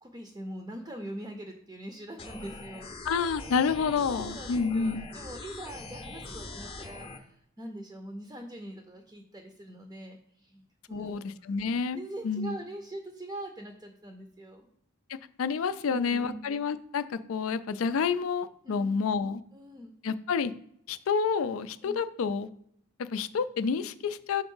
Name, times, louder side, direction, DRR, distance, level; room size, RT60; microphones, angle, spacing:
voice 1, 0.0-2.9 4.1-11.6 11.9-14.7 15.8-16.5 18.6-19.0 19.5-19.9 21.8-22.0, right 1 dB, 15° right, 3 dB, 0.5 m, -43 dB
sound 1, 2.2-7.2, left 3 dB, 30° left, 0.7 m, -42 dB
voice 2, 3.1-5.1 10.9-12.0 12.2-12.6 15.1-19.4 20.0-20.5 20.9-22.5 23.0-24.4, left 5 dB, 70° left, 13 dB, 0.4 m, -29 dB
5.3 x 3.5 x 5.4 m, 0.70 s
head